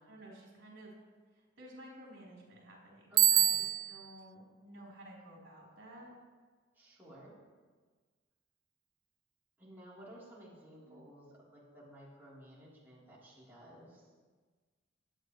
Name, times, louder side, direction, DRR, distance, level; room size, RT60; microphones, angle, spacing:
voice 1, 0.0-0.9 1.6-6.1 10.8-11.0, right 1 dB, 70° right, -4 dB, 4.0 m, -53 dB
voice 2, 3.1-3.6 6.7-7.3 9.6-11.3 11.5-14.1, right 1 dB, 10° right, -9 dB, 3.7 m, -54 dB
Bicycle bell, 3.2-4.1, right 12 dB, 90° right, 0.4 m, -26 dB
24.0 x 8.8 x 3.2 m, 1.4 s
head